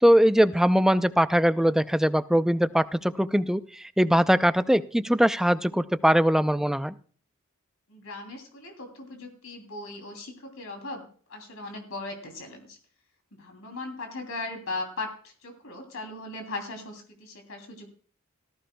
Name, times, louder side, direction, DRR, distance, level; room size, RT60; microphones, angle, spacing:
voice 1, 0.0-6.9, equal, ahead, 12 dB, 0.4 m, -21 dB
voice 2, 7.9-12.8 13.4-17.9, left 2 dB, 70° left, 3 dB, 2.9 m, -38 dB
18.5 x 14.0 x 2.2 m, 0.44 s
head